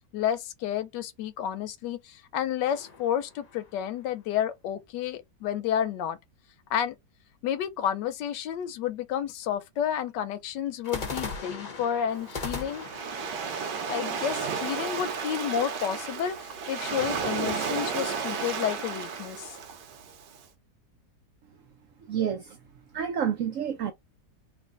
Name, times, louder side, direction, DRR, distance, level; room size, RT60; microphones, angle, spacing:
voice 1, 0.1-6.2 6.7-7.0 7.4-12.9 13.9-19.6, left 9 dB, 85° left, 1.3 m, -30 dB
sound 1, 2.6-4.1 10.8-14.8, left 4 dB, 30° left, 0.8 m, -39 dB
Waves surf, 12.1-20.4, right 6 dB, 85° right, 1.4 m, -33 dB
voice 2, 22.1-22.6 22.9-23.9, right 8 dB, 70° right, 0.8 m, -29 dB
3.2 x 2.6 x 3.8 m
omnidirectional pair, 1.8 m